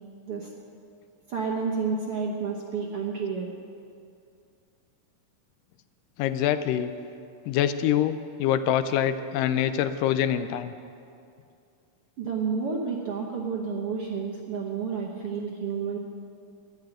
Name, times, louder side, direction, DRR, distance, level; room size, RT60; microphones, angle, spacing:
voice 1, 1.3-3.5 12.2-16.0, right 5 dB, 60° right, -1 dB, 1.5 m, -30 dB
voice 2, 6.2-6.9 7.5-10.7, left 10 dB, 85° left, 11 dB, 2.2 m, -25 dB
12.0 x 10.5 x 9.0 m, 2.4 s
omnidirectional pair, 3.9 m